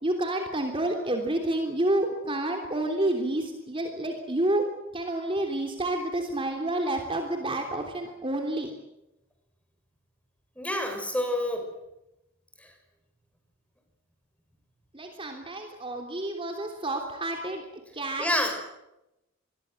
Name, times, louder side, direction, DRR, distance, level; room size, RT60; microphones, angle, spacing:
voice 1, 0.0-4.6 4.9-8.7 14.9-17.7 17.9-18.3, right 1 dB, 25° right, 4 dB, 3.2 m, -29 dB
voice 2, 10.6-11.7 12.6-12.7 18.2-18.7, left 1 dB, 5° left, 5 dB, 6.1 m, -28 dB
27.5 x 21.5 x 7.9 m, 0.90 s
head